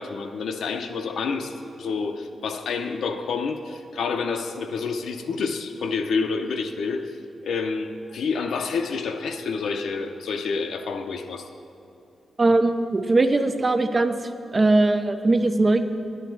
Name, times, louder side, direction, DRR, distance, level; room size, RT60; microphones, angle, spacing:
voice 1, 0.0-7.2 7.4-11.5, left 4 dB, 85° left, 6 dB, 0.6 m, -28 dB
voice 2, 12.4-14.2 14.5-15.8, right 2 dB, 25° right, 8 dB, 0.5 m, -20 dB
10.5 x 10.0 x 4.6 m, 2.7 s
wide cardioid pair, 160°, 0 cm